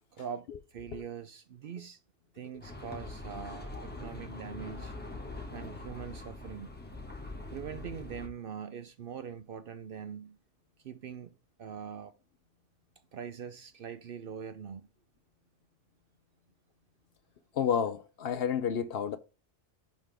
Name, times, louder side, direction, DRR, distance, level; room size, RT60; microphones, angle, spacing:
voice 1, 0.1-2.0 2.3-5.0 5.5-6.7 7.5-10.4 10.8-12.1 13.1-14.9, right 7 dB, 60° right, 0.6 m, -43 dB
sound 1, 2.6-8.3, left 2 dB, 10° left, 1.1 m, -43 dB
voice 2, 17.5-19.2, left 8 dB, 60° left, 0.7 m, -30 dB
10.5 x 3.8 x 3.4 m
omnidirectional pair, 1.2 m